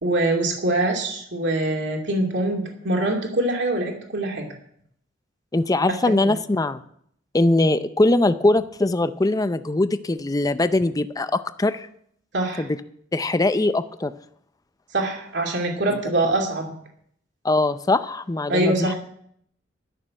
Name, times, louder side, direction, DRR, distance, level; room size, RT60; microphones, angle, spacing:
voice 1, 0.0-4.5 6.2-6.3 12.3-12.7 14.9-16.7 18.5-18.9, right 2 dB, 65° right, 1 dB, 2.6 m, -24 dB
voice 2, 5.5-6.8 7.3-11.9 12.6-12.7 13.1-14.1 15.9-16.0 17.4-18.9, left 2 dB, 20° left, 12 dB, 0.5 m, -21 dB
12.0 x 6.7 x 8.5 m, 0.68 s
head